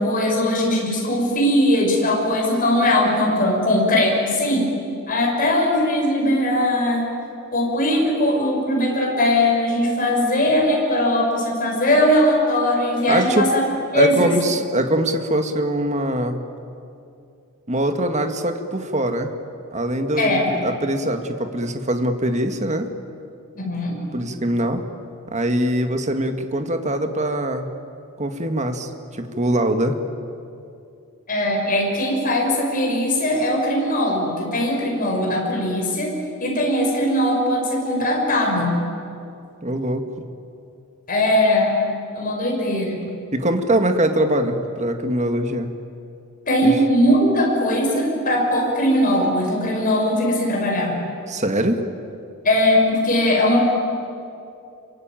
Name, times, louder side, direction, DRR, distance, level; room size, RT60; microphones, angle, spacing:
voice 1, 0.0-4.6 5.1-7.1 7.5-13.6 13.9-14.3 20.2-20.5 23.5-24.0 31.3-36.1 36.4-38.8 41.1-41.8 42.1-43.0 46.5-50.9 52.4-53.6, left 1 dB, 40° left, -1 dB, 6.1 m, -20 dB
voice 2, 13.1-13.5 13.9-16.4 17.7-19.3 19.7-22.9 24.1-24.8 25.3-27.7 28.2-30.0 39.6-40.1 43.3-45.7 46.6-46.8 51.3-51.8, right 1 dB, 30° right, 6 dB, 1.9 m, -22 dB
27.5 x 23.5 x 9.2 m, 2.6 s
head